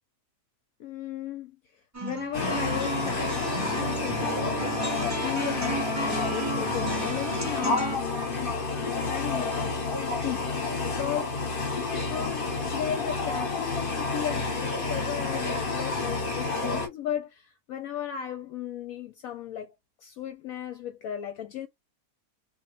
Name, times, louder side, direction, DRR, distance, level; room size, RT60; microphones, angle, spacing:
voice 1, 0.8-1.5 2.0-8.5 8.8-9.8 10.2-10.5 10.8-11.4 12.1-19.7 20.0-21.7, left 10 dB, 70° left, 1.0 m, -35 dB
sound 1, 1.9-8.0, right 2 dB, 25° right, 0.3 m, -33 dB
sound 2, 2.3-16.9, left 3 dB, 40° left, 1.0 m, -30 dB
2.9 x 2.5 x 3.0 m
omnidirectional pair, 1.6 m